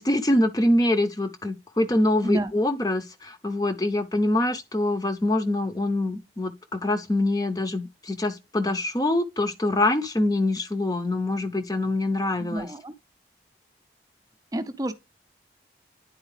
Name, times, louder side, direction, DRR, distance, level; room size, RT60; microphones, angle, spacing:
voice 1, 0.0-12.7, left 1 dB, 20° left, 0.7 m, -24 dB
voice 2, 12.4-12.9 14.5-14.9, right 1 dB, 20° right, 0.6 m, -29 dB
9.9 x 4.5 x 3.2 m
head